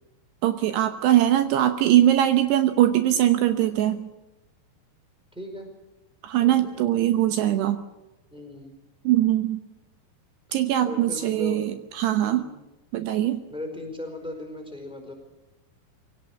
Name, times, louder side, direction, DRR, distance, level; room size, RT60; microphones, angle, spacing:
voice 1, 0.4-4.1 6.2-7.8 9.1-9.6 10.5-12.4 12.9-13.4, right 12 dB, 75° right, 9 dB, 3.0 m, -21 dB
voice 2, 5.3-5.7 6.4-6.7 8.3-8.7 10.8-11.6 12.2-12.5 13.5-15.1, left 1 dB, ahead, 3 dB, 4.5 m, -37 dB
22.5 x 18.0 x 8.5 m, 0.98 s
omnidirectional pair, 5.1 m